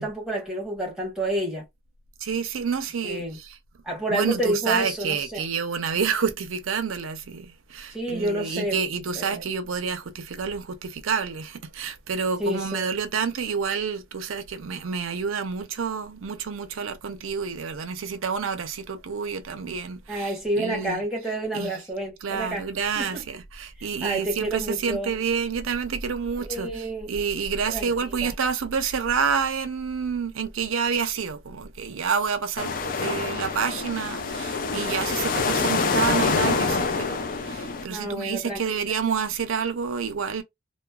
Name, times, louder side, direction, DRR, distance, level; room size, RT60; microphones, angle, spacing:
voice 1, 0.0-1.6 3.0-3.4 3.8-5.4 7.9-8.8 9.2-9.4 12.4-12.9 20.1-22.7 22.9-23.2 24.0-25.1 26.4-27.1 27.7-27.9 28.2-28.3 37.9-38.6, right 1 dB, 5° right, 1.0 m, -29 dB
voice 2, 2.2-3.6 4.1-21.0 21.5-21.8 22.2-40.4, right 6 dB, 85° right, 0.5 m, -28 dB
sound 1, 32.6-37.8, left 4 dB, 45° left, 0.4 m, -26 dB
2.9 x 2.1 x 2.2 m
head